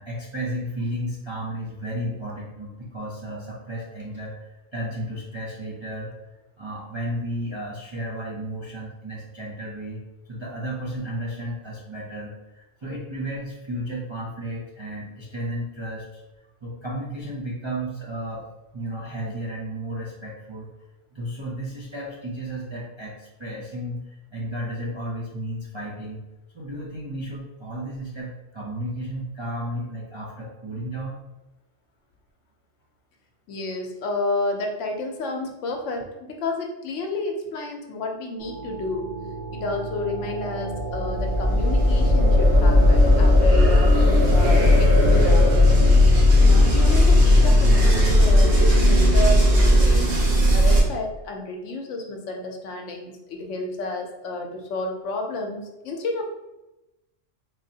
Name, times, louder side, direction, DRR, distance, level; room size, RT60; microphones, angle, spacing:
voice 1, 0.0-6.1 6.6-16.2 16.6-18.5 18.7-20.7 21.1-26.2 26.5-31.2, right 1 dB, 35° right, -5 dB, 0.4 m, -33 dB
voice 2, 33.5-39.1 39.5-43.9 44.3-45.6 46.4-50.2 50.5-56.3, left 2 dB, 80° left, 3 dB, 1.0 m, -30 dB
sound 1, 38.4-50.8, left 1 dB, 65° right, 1.1 m, -17 dB
4.0 x 3.0 x 2.7 m, 0.98 s
omnidirectional pair, 1.3 m